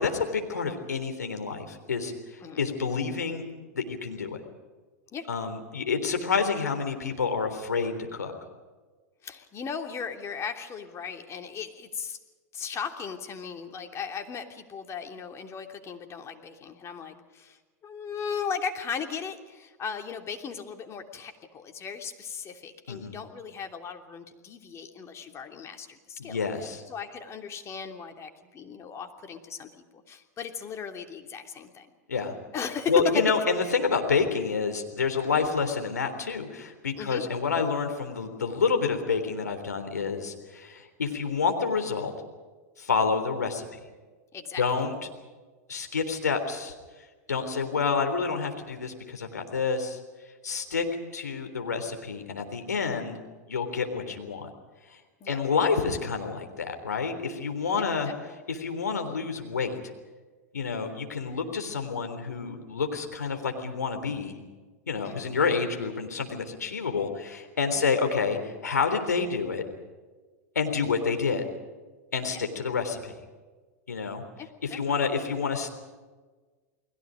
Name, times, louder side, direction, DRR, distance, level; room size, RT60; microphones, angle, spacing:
voice 1, 0.0-3.4 3.7-4.4 5.3-8.3 22.9-23.2 26.2-26.8 32.1-32.3 32.9-42.1 42.8-43.8 44.6-44.9 45.7-46.7 47.3-50.0 50.4-50.8 51.1-53.2 53.5-54.5 54.9-55.0 55.3-58.1 58.5-59.8 60.5-64.4 64.9-69.6 70.6-71.4 72.1-73.1 73.9-74.2 74.6-75.7, left 5 dB, 85° left, 5 dB, 3.6 m, -28 dB
voice 2, 9.2-12.2 12.5-26.4 26.9-31.9 32.5-32.9 37.0-37.2 44.3-44.8 55.2-55.4 57.8-58.4 65.0-65.3 67.7-67.9 72.3-72.4 74.4-75.1, left 6 dB, 30° left, 5 dB, 3.1 m, -37 dB
30.0 x 21.0 x 5.2 m, 1.3 s
hypercardioid pair, 95°, 9 cm